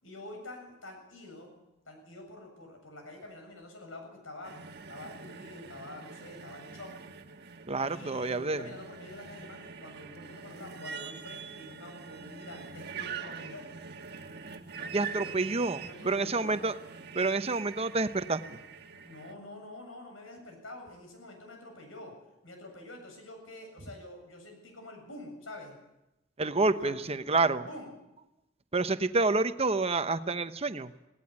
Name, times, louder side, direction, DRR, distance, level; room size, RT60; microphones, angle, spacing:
voice 1, 0.0-1.6 1.9-4.6 4.9-6.9 7.9-13.7 14.8-15.4 15.8-16.7 18.9-22.1 22.4-25.7 26.6-27.1 27.6-27.9, left 1 dB, 90° left, 3 dB, 7.6 m, -47 dB
sound 1, 4.4-19.3, right 6 dB, 55° right, 1.5 m, -44 dB
voice 2, 7.7-8.6 14.9-16.7 17.1-18.6 26.4-27.6 28.7-30.9, right 3 dB, 30° right, 11 dB, 0.9 m, -28 dB
18.0 x 17.5 x 9.6 m, 0.94 s
head